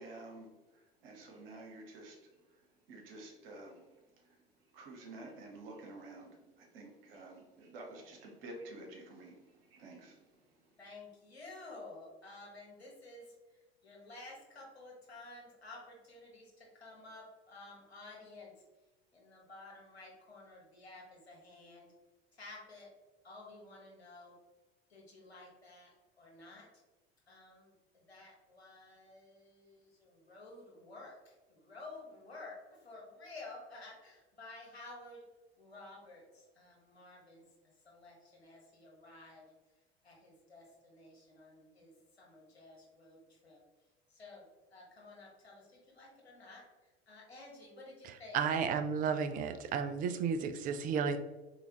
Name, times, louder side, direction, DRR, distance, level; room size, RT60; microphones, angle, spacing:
voice 1, 0.0-4.4 4.7-10.7, right 2 dB, 65° right, 1 dB, 1.1 m, -51 dB
voice 2, 10.8-13.2 13.8-18.5 19.1-21.9 22.4-22.9 23.2-24.3 24.9-25.9 26.2-26.7 27.3-27.7 28.1-35.2 35.6-37.4 37.8-39.4 40.0-41.9 42.2-43.6 44.1-44.4 44.7-46.6 47.1-48.4, left 2 dB, 85° left, -2 dB, 1.3 m, -52 dB
voice 3, 48.0-51.2, right 6 dB, 30° right, 9 dB, 0.3 m, -33 dB
4.0 x 3.2 x 2.8 m, 1.2 s
figure-of-eight pair, 75°, 31 cm